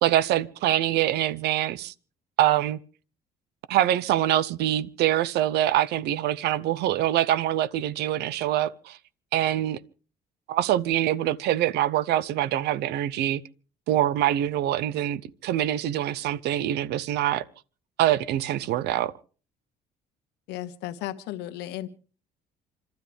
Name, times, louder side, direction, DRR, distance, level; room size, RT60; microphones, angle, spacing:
voice 1, 0.0-1.9 2.4-2.8 3.7-9.0 9.3-9.8 10.5-13.4 13.9-17.4 18.0-19.1, right 12 dB, 80° right, 0.7 m, -24 dB
voice 2, 20.5-21.9, left 13 dB, 90° left, 1.1 m, -34 dB
28.0 x 13.0 x 3.5 m
cardioid pair, 110°, 17 cm